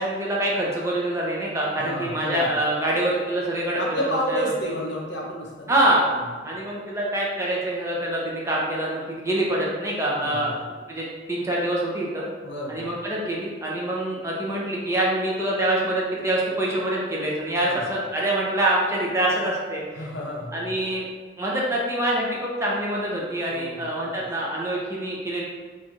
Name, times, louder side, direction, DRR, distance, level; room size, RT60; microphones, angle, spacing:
voice 1, 0.0-4.5 5.7-6.0 6.4-10.5 10.9-12.2 12.7-20.1 20.5-21.0 21.4-25.5, right 1 dB, 15° right, -4 dB, 0.6 m, -25 dB
voice 2, 1.8-2.6 3.8-5.7 6.2-6.3 10.1-10.5 12.4-12.9 17.6-17.8 19.9-20.7 23.5-23.9 24.2-24.3, equal, 75° left, -2 dB, 0.9 m, -31 dB
3.1 x 2.6 x 3.7 m, 1.5 s
head